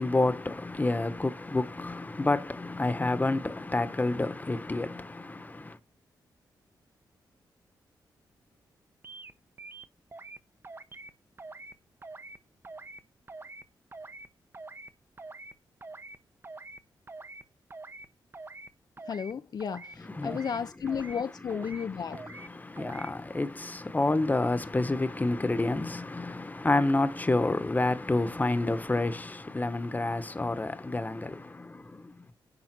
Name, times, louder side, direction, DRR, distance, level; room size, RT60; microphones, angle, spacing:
voice 1, 0.0-5.8 20.0-20.5 21.7-32.3, left 2 dB, 20° left, 1.1 m, -29 dB
sound 1, 9.0-9.3 9.6-10.4 10.6-11.1 11.4-11.7 12.0-12.4 12.6-13.0 13.3-13.6 13.9-14.3 14.5-14.9 15.2-15.5 15.8-16.2 16.4-16.8 17.1-17.4 17.7-18.1 18.3-18.7 19.0-19.3 19.6-20.0 20.2-20.6 20.9-21.2 21.5-21.9 22.1-22.5 22.8-23.1, right 3 dB, 30° right, 0.9 m, -45 dB
voice 2, 19.1-22.2, left 7 dB, 55° left, 0.6 m, -33 dB
10.5 x 3.9 x 6.1 m
cardioid pair, 75°, 8 cm